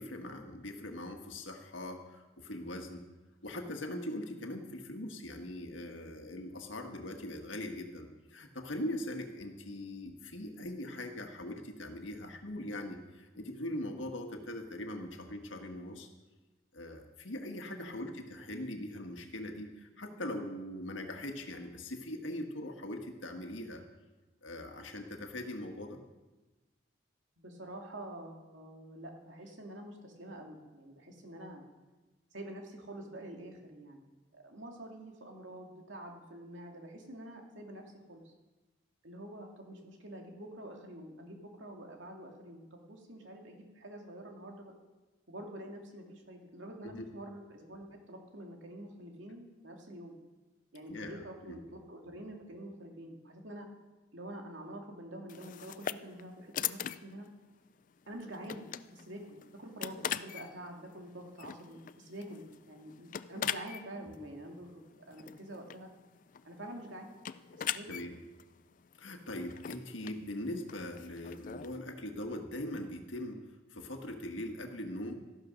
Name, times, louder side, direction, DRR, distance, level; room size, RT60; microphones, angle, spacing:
voice 1, 0.0-3.1 3.4-16.1 16.7-23.8 24.4-26.0 46.8-47.1 50.9-51.6 67.9-68.1 69.0-75.1, left 1 dB, 85° left, 4 dB, 1.7 m, -41 dB
voice 2, 17.8-18.1 27.4-31.6 32.3-34.0 34.3-38.3 39.0-44.7 45.3-50.2 50.7-53.7 54.1-57.3 58.1-65.9 66.4-67.1 67.5-68.0, right 1 dB, 85° right, 1 dB, 2.4 m, -47 dB
sound 1, 55.3-71.8, left 9 dB, 45° left, 0.3 m, -42 dB
13.5 x 12.0 x 5.3 m, 1.2 s
head